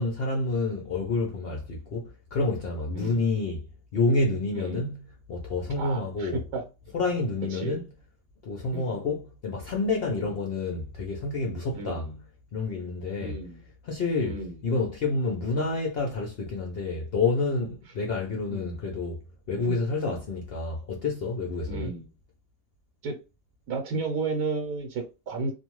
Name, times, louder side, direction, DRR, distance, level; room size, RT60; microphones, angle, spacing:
voice 1, 0.0-3.7 3.9-5.0 5.3-6.4 6.9-7.8 8.4-12.0 12.5-13.4 13.8-14.4 14.6-19.2 19.5-21.9, left 3 dB, 60° left, 0.6 m, -28 dB
voice 2, 4.5-4.9 5.8-6.6 7.5-7.8 8.7-9.0 11.7-12.1 13.2-13.6 14.2-14.5 18.5-18.8 19.6-20.2 21.7-22.1 23.0-23.2 23.7-25.5, right 3 dB, 85° right, 1.2 m, -33 dB
2.5 x 2.3 x 2.9 m
omnidirectional pair, 1.5 m